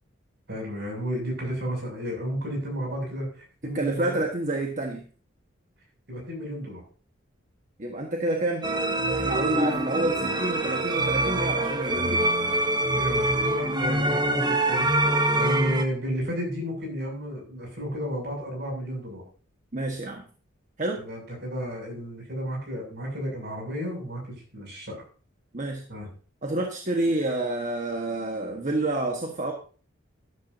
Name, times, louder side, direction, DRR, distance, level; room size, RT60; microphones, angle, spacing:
voice 1, 0.5-4.1 6.1-6.8 9.6-9.9 12.9-14.9 15.4-19.2 21.0-25.0 25.9-26.1, equal, 60° right, 1 dB, 7.2 m, -32 dB
voice 2, 3.7-5.0 7.8-8.7 9.1-12.3 19.7-20.2 20.8-21.0 25.5-25.8 26.4-29.5, right 2 dB, 40° right, 2 dB, 1.5 m, -28 dB
sound 1, 8.6-15.8, right 1 dB, 20° right, 1.0 m, -25 dB
13.0 x 12.5 x 2.8 m, 0.39 s
head